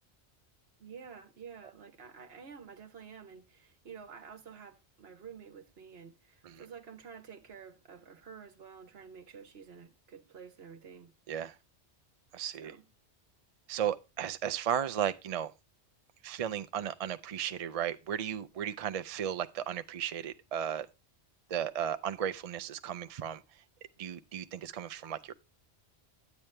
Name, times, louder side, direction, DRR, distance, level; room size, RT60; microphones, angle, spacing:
voice 1, 0.8-11.1 12.6-12.9, right 6 dB, 65° right, 1.3 m, -50 dB
voice 2, 12.3-12.7 13.7-15.5 16.2-20.9 21.5-23.4 24.0-25.3, right 9 dB, 50° right, 0.4 m, -35 dB
10.5 x 8.3 x 3.2 m
omnidirectional pair, 1.1 m